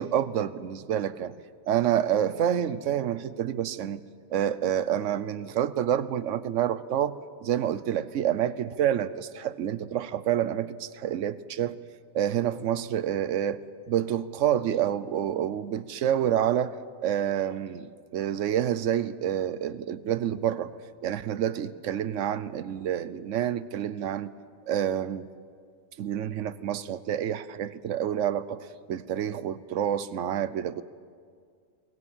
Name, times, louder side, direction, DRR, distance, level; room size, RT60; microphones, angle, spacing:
voice 1, 0.0-1.3 1.7-4.0 4.3-11.8 12.1-16.7 17.0-24.3 24.7-25.3 26.0-30.8, right 10 dB, 85° right, 15 dB, 1.1 m, -28 dB
23.5 x 19.5 x 7.3 m, 2.1 s
omnidirectional pair, 1.2 m